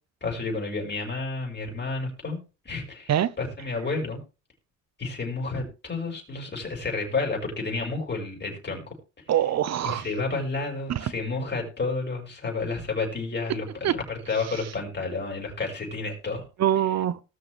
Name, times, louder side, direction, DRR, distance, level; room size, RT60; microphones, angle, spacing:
voice 1, 0.2-4.2 5.0-8.8 9.8-16.4, left 3 dB, 35° left, 6.4 m, -31 dB
voice 2, 9.3-10.1 10.9-11.1 13.8-14.0 14.5-14.6 16.6-17.2, right 11 dB, 60° right, 0.9 m, -24 dB
19.5 x 6.8 x 3.4 m
cardioid pair, 90°, 30 cm